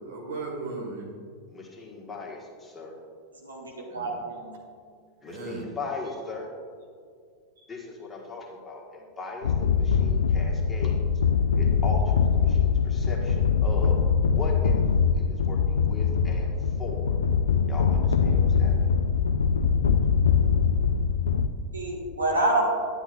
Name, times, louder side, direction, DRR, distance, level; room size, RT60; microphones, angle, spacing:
voice 1, 0.0-1.3 3.9-4.1 5.3-5.7 7.6-7.7, right 3 dB, 65° right, 0 dB, 1.8 m, -37 dB
voice 2, 1.5-3.0 5.2-6.5 7.7-11.0 11.6-14.0 14.2-17.2 17.6-18.9, left 3 dB, 15° left, -2 dB, 1.6 m, -38 dB
voice 3, 3.4-4.6 21.7-22.6, right 2 dB, 80° right, -2 dB, 1.6 m, -27 dB
sound 1, 9.4-21.5, left 6 dB, 75° left, 0.4 m, -23 dB
10.5 x 9.8 x 2.5 m, 2.1 s
figure-of-eight pair, 90°, 0 cm